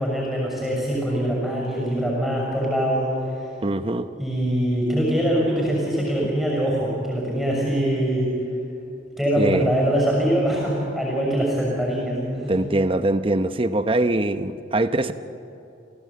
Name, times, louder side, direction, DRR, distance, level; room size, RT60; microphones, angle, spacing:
voice 1, 0.0-3.3 4.2-8.3 9.2-12.5, equal, 5° left, -4 dB, 6.3 m, -23 dB
voice 2, 3.6-4.1 9.4-9.7 12.5-15.1, right 2 dB, 30° right, 11 dB, 0.8 m, -22 dB
29.0 x 16.0 x 8.5 m, 2.8 s
head